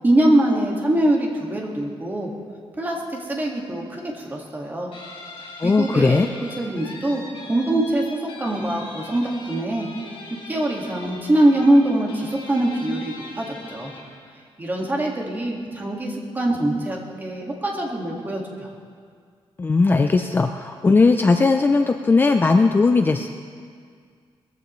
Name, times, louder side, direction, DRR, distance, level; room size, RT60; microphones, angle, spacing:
voice 1, 0.0-2.3 2.8-4.9 5.6-6.3 6.6-9.9 10.5-13.9 14.6-18.7, right 1 dB, 20° right, -1 dB, 1.9 m, -23 dB
Guitar, 4.9-14.2, left 2 dB, 70° left, 4.7 m, -41 dB
voice 2, 5.6-6.3 19.6-23.3, left 3 dB, 20° left, 6 dB, 0.4 m, -18 dB
20.5 x 14.5 x 3.2 m, 2.1 s
wide cardioid pair, 165°, 10 cm